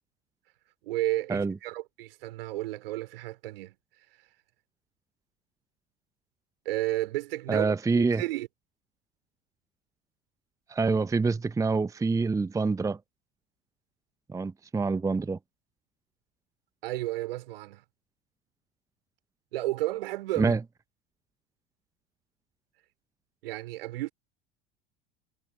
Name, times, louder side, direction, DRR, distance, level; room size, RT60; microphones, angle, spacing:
voice 1, 0.8-3.7 6.6-8.5 16.8-17.8 19.5-20.5 23.4-24.1, right 17 dB, 60° right, 3.0 m, -32 dB
voice 2, 7.5-8.2 10.7-13.0 14.3-15.4 20.4-20.6, right 4 dB, 10° right, 0.9 m, -26 dB
figure-of-eight pair, 75°, 32 cm